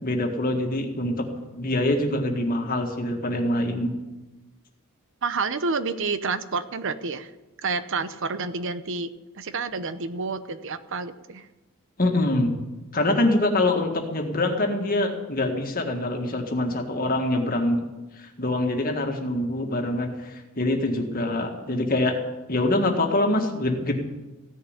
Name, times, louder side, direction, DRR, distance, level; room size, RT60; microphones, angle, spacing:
voice 1, 0.0-1.3 1.5-3.9 12.0-12.6 12.9-17.8 18.2-22.2 22.5-23.9, left 1 dB, 40° left, 3 dB, 1.9 m, -24 dB
voice 2, 5.2-7.3 7.6-11.5, right 4 dB, 60° right, 11 dB, 0.8 m, -29 dB
16.0 x 7.0 x 9.7 m, 1.1 s
head